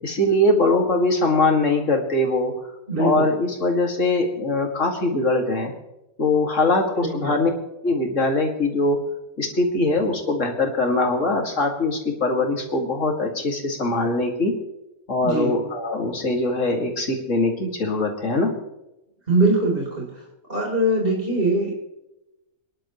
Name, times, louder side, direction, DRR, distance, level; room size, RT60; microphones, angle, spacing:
voice 1, 0.0-2.5 3.0-5.7 6.2-7.5 7.8-9.0 9.4-14.5 15.1-18.5, left 2 dB, 60° left, 2 dB, 2.6 m, -22 dB
voice 2, 2.9-3.3 7.0-7.3 15.2-15.5 19.3-20.1 20.5-21.7, right 2 dB, 40° right, -1 dB, 4.1 m, -21 dB
26.5 x 11.5 x 3.2 m, 0.93 s
omnidirectional pair, 1.5 m